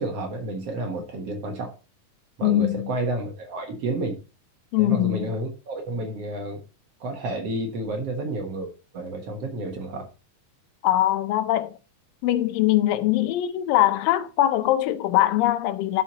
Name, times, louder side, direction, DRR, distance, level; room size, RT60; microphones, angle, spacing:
voice 1, 0.0-1.7 2.4-4.2 4.8-6.6 7.0-10.1, right 2 dB, 55° right, 2.1 m, -30 dB
voice 2, 2.4-2.9 4.7-5.3 10.8-11.8 12.2-16.0, left 14 dB, 90° left, 2.4 m, -22 dB
11.5 x 5.7 x 2.8 m
omnidirectional pair, 3.9 m